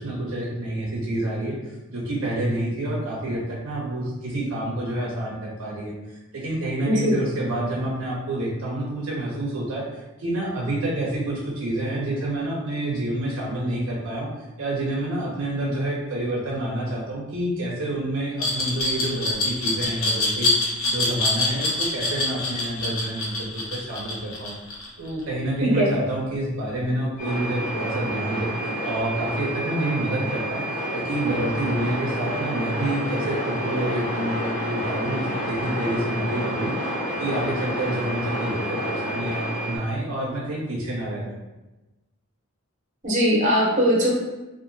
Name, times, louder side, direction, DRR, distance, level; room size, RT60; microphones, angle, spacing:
voice 1, 0.0-14.3 14.6-24.6 25.0-36.7 37.1-41.4, right 1 dB, 65° right, -4 dB, 0.5 m, -28 dB
Glass, 18.4-25.2, left 2 dB, 65° left, 0.7 m, -25 dB
sound 1, 27.2-39.8, equal, 35° left, 0.8 m, -29 dB
voice 2, 43.0-44.1, equal, 35° right, -4 dB, 0.7 m, -20 dB
2.8 x 2.4 x 2.6 m, 1.1 s
head